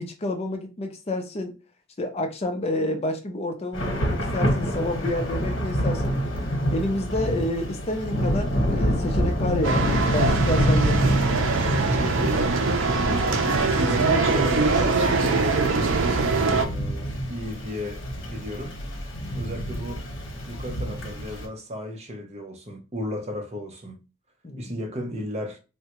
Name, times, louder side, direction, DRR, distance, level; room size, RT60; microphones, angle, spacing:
voice 1, 0.0-1.5 2.0-6.1 6.7-11.0 24.4-24.7, left 1 dB, 30° left, 0.5 m, -29 dB
Thunder / Rain, 3.7-21.4, equal, 75° left, 1.0 m, -27 dB
sound 1, 9.6-16.7, right 3 dB, 70° right, 0.6 m, -23 dB
voice 2, 11.9-12.4 12.8-16.0 16.2-18.8 19.3-20.1 20.5-24.0 24.6-25.6, equal, 35° right, 0.7 m, -33 dB
3.6 x 2.2 x 2.9 m
head